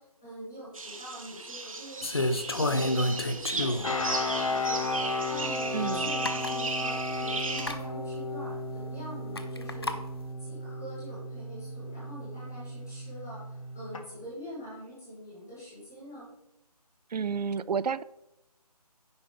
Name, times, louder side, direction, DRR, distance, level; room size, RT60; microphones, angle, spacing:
voice 1, 0.0-4.9 5.2-10.0 10.4-16.3, equal, 5° left, -9 dB, 0.7 m, -45 dB
sound 1, 0.7-7.7, right 3 dB, 55° right, 0.9 m, -36 dB
sound 2, 2.0-4.0 4.6-4.7 5.9-6.0 6.2-6.6 7.5-7.8 9.3-10.0, left 1 dB, 40° left, 0.5 m, -29 dB
sound 3, 3.8-14.0, left 2 dB, 55° left, 1.0 m, -34 dB
voice 2, 5.7-6.1 17.1-18.0, right 6 dB, 85° right, 19 dB, 0.4 m, -30 dB
9.4 x 3.8 x 5.1 m, 0.87 s
figure-of-eight pair, 180°, 20 cm